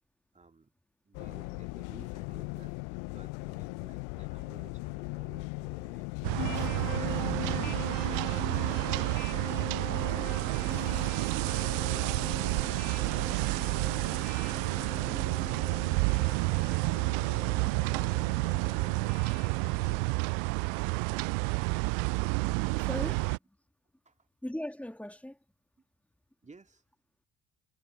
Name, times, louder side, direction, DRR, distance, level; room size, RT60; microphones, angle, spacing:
voice 1, 0.3-0.7 1.0-6.1 8.1-9.2 9.6-10.8 14.0-16.6 24.1-24.2 26.4-26.8, right 4 dB, 20° right, 2.2 m, -55 dB
sound 1, 1.1-7.9, left 40 dB or more, 55° left, 0.6 m, -38 dB
sound 2, 6.2-23.4, right 40 dB or more, 55° right, 0.5 m, -30 dB
sound 3, 6.4-20.0, left 13 dB, 75° left, 1.4 m, -42 dB
voice 2, 22.8-23.6 24.4-25.4, left 1 dB, 5° left, 2.1 m, -40 dB
figure-of-eight pair, 50°, 38 cm